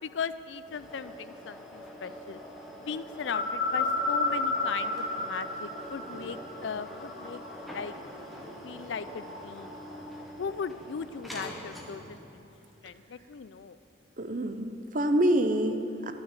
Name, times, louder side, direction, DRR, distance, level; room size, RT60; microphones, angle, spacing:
voice 1, 0.0-2.4 2.8-7.9 8.6-9.7 10.4-12.5 12.8-13.8, left 6 dB, 75° left, 14 dB, 0.4 m, -38 dB
sound 1, 0.6-12.3, equal, ahead, 1.2 m, -45 dB
sound 2, 2.7-10.2, left 3 dB, 55° left, 1.7 m, -34 dB
voice 2, 14.2-16.1, right 1 dB, 45° right, 8 dB, 0.7 m, -26 dB
12.0 x 6.4 x 9.6 m, 3.0 s
head